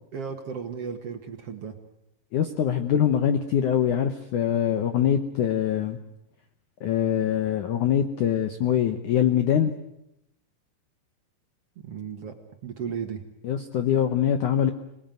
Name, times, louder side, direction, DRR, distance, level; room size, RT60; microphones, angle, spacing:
voice 1, 0.1-1.8 11.7-12.3 12.6-13.2, right 7 dB, 60° right, 6 dB, 1.5 m, -35 dB
voice 2, 2.3-6.0 6.8-9.7 13.4-14.7, left 9 dB, 75° left, 9 dB, 1.8 m, -23 dB
27.0 x 20.0 x 9.2 m, 0.84 s
omnidirectional pair, 5.2 m